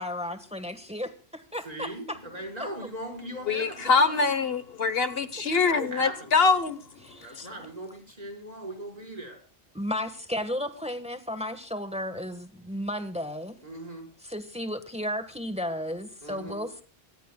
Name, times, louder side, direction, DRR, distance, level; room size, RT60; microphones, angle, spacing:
voice 1, 0.0-2.2 5.8-5.9 7.0-7.5 9.7-13.6 14.2-16.8, left 1 dB, 5° right, 9 dB, 1.4 m, -34 dB
voice 2, 1.6-4.2 5.3-6.4 7.1-9.4 13.6-14.1 16.2-16.6, right 1 dB, 40° right, 1 dB, 5.2 m, -39 dB
voice 3, 3.5-6.8 7.4-7.5, left 4 dB, 70° left, 12 dB, 1.4 m, -24 dB
25.5 x 18.0 x 2.3 m, 0.34 s
omnidirectional pair, 1.0 m